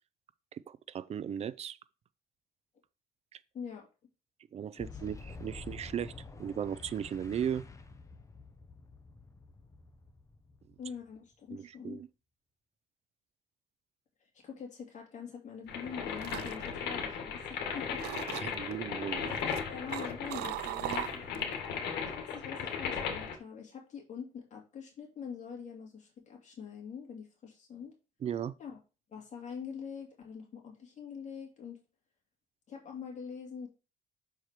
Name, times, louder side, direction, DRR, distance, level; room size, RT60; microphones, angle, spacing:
voice 1, 0.5-1.8 3.3-3.4 4.5-7.6 11.5-12.1 18.4-19.4 28.2-28.5, right 9 dB, 40° right, 0.5 m, -37 dB
voice 2, 3.5-3.9 4.7-4.9 10.8-12.0 14.4-18.0 18.3-18.8 19.2-21.5 22.2-27.9 28.6-28.8 29.1-31.8 32.7-33.7, left 6 dB, 45° left, 2.5 m, -44 dB
Boom, 4.8-11.3, left 3 dB, 20° left, 0.8 m, -49 dB
sound 1, 15.7-23.4, left 6 dB, 80° left, 1.8 m, -37 dB
sound 2, 15.8-17.6 18.0-18.7 19.3-21.5 21.9-22.2, right 15 dB, 85° right, 0.5 m, -40 dB
6.4 x 4.7 x 4.5 m
cardioid pair, 110°, 17 cm